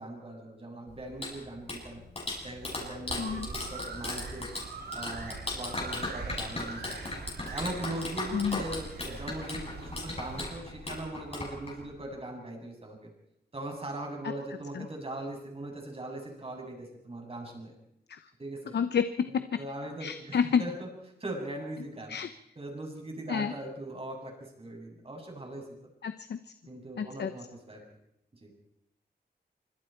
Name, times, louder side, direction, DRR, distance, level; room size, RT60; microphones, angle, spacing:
voice 1, 0.0-2.0 2.4-4.5 4.9-7.0 7.5-13.1 13.5-17.7 18.4-18.8 19.3-20.9 21.2-22.2 22.6-25.7 26.7-27.8 28.4-28.5, right 1 dB, 35° right, 1 dB, 7.4 m, -40 dB
Clapping, 0.9-12.0, left 2 dB, 35° left, 7.6 m, -38 dB
sound 1, 3.1-10.5, right 4 dB, 70° right, 3.5 m, -42 dB
voice 2, 18.7-19.4 20.0-20.6 22.1-22.3 23.3-23.5 26.0-26.4 27.0-27.3, left 7 dB, 85° left, 11 dB, 0.9 m, -29 dB
26.0 x 25.5 x 4.5 m, 0.78 s
wide cardioid pair, 115°, 17 cm